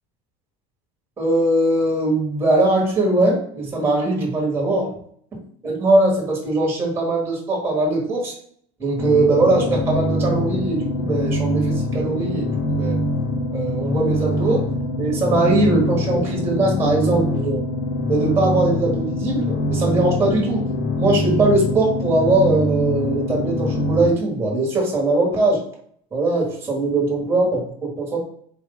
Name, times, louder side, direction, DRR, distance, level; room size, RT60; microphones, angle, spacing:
voice 1, 1.2-4.9 5.6-8.3 8.8-13.0 13.5-14.6 14.9-17.6 18.1-20.6 21.0-25.6 26.1-28.2, right 2 dB, 15° right, -1 dB, 1.5 m, -20 dB
sound 1, 9.0-24.1, left 1 dB, 85° left, 1.9 m, -23 dB
4.5 x 2.7 x 3.8 m, 0.62 s
cardioid pair, 155°, 18 cm